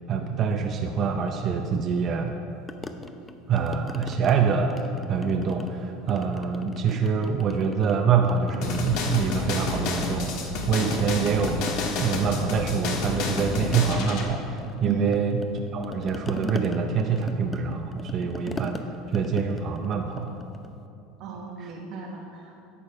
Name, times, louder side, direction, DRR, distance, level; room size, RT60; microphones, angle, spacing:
voice 1, 0.1-2.3 3.5-4.7 5.1-11.6 12.0-15.4 15.7-18.8 19.1-20.3 21.6-21.7, right 6 dB, 40° right, 3 dB, 0.6 m, -25 dB
sound 1, 2.7-4.4 4.7-5.8 6.1-7.9 8.2-10.6 10.9-20.8, left 2 dB, 15° left, 0.6 m, -39 dB
sound 2, 8.6-14.2, left 3 dB, 65° left, 1.6 m, -29 dB
voice 2, 21.2-22.6, right 5 dB, 65° right, -2 dB, 1.3 m, -34 dB
11.0 x 7.2 x 4.8 m, 2.8 s
supercardioid pair, 125°, 0 cm